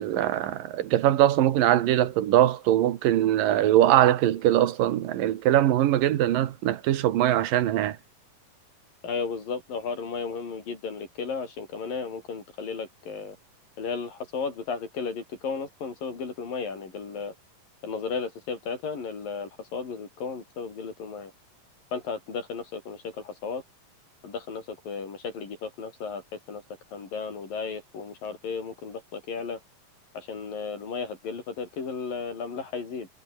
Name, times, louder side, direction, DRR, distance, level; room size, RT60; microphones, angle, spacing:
voice 1, 0.0-8.0, right 12 dB, 85° right, 3.1 m, -22 dB
voice 2, 9.0-13.4 13.8-17.3 17.8-21.3 21.9-23.6 24.2-26.6 26.9-29.6 30.1-33.1, left 5 dB, 85° left, 7.0 m, -34 dB
omnidirectional pair, 3.9 m